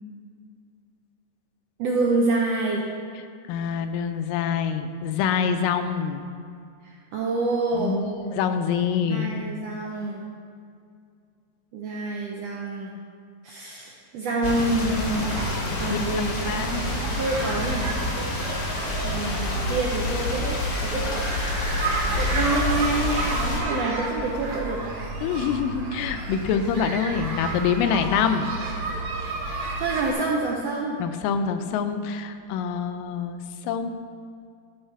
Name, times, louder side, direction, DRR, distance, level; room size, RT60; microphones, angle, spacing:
voice 1, 1.8-2.8 6.8-8.0 9.1-10.2 11.7-12.9 13.4-15.4 15.8-17.9 19.0-21.3 22.2-24.8 29.8-31.0, right 2 dB, 80° right, -2 dB, 1.4 m, -27 dB
voice 2, 3.5-6.3 7.7-9.3 15.9-16.8 25.2-28.5 31.0-33.9, left 7 dB, 85° left, 8 dB, 2.2 m, -26 dB
sound 1, 14.4-23.6, left 2 dB, 60° left, 1.0 m, -28 dB
sound 2, 15.0-30.1, right 2 dB, 50° right, 1.9 m, -32 dB
13.0 x 4.8 x 4.6 m, 2.3 s
omnidirectional pair, 3.8 m